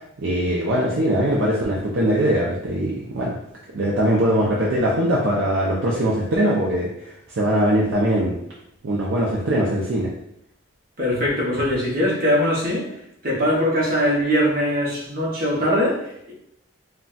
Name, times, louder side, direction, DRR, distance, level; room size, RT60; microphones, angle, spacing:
voice 1, 0.2-3.4 3.7-8.4 8.8-10.1, right 1 dB, 60° right, -4 dB, 0.5 m, -21 dB
voice 2, 11.0-12.9 13.2-16.3, equal, 45° right, -4 dB, 0.8 m, -21 dB
3.9 x 2.2 x 2.3 m, 0.75 s
head